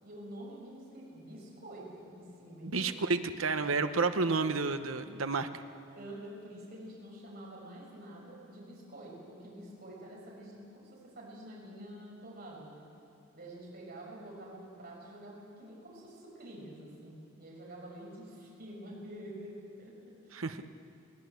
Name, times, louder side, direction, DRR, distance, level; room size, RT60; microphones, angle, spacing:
voice 1, 0.0-2.9 5.9-12.8 13.3-20.4, right 1 dB, 50° right, -4 dB, 6.1 m, -48 dB
voice 2, 2.6-5.5 20.3-20.7, right 4 dB, 80° right, 9 dB, 1.0 m, -30 dB
22.0 x 17.5 x 8.2 m, 2.6 s
head